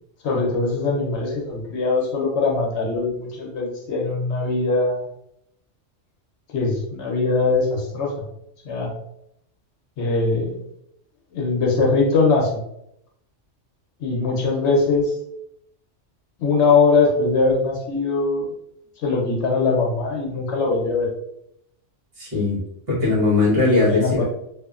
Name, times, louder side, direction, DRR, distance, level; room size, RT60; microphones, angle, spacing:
voice 1, 0.2-5.1 6.5-8.1 8.6-8.9 10.0-10.6 11.3-12.6 14.0-15.2 16.4-18.5 19.0-21.1 23.6-24.2, left 3 dB, 70° left, -1 dB, 0.9 m, -21 dB
voice 2, 22.2-22.6 22.9-24.2, left 3 dB, 55° right, -7 dB, 1.4 m, -19 dB
2.7 x 2.4 x 2.3 m, 0.77 s
omnidirectional pair, 1.3 m